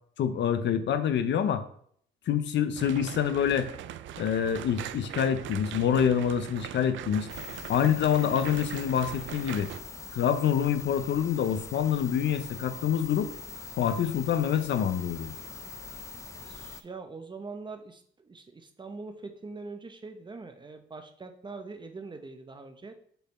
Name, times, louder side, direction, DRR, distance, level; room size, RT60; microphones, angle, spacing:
voice 1, 0.2-1.6 2.3-3.7 4.2-7.3 7.7-9.7 10.1-13.3 13.8-15.3, left 8 dB, 65° left, 11 dB, 0.7 m, -26 dB
sound 1, 2.8-9.8, right 11 dB, 75° right, 0.4 m, -41 dB
sound 2, 7.3-16.8, left 4 dB, 15° left, 0.6 m, -42 dB
voice 2, 16.4-22.9, right 3 dB, 25° right, 6 dB, 0.9 m, -43 dB
6.9 x 4.2 x 4.2 m, 0.63 s
cardioid pair, 90°, 20 cm